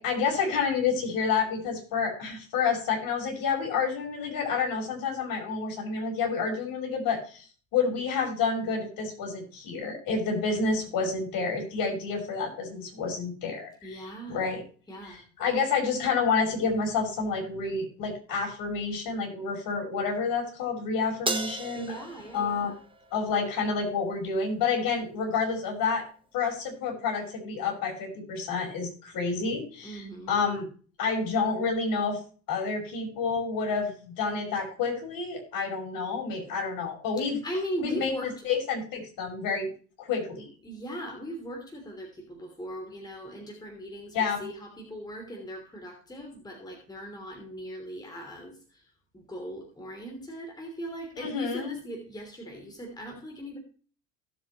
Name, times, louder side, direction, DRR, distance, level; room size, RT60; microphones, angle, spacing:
voice 1, 0.0-14.6 15.0-21.9 22.3-22.7 23.1-26.1 26.3-30.6 31.0-32.2 32.5-37.4 37.8-39.7 40.0-40.5 44.1-44.5 51.2-51.7, left 5 dB, 40° left, 1 dB, 5.6 m, -29 dB
voice 2, 13.8-14.5 14.9-15.2 21.7-22.7 29.8-30.3 37.2-38.5 40.6-48.8 49.1-53.6, right 1 dB, 10° left, 0 dB, 3.2 m, -39 dB
Crash cymbal, 21.3-23.8, right 2 dB, 10° right, 1.4 m, -35 dB
17.5 x 8.0 x 3.1 m, 0.41 s
figure-of-eight pair, 75°, 50 cm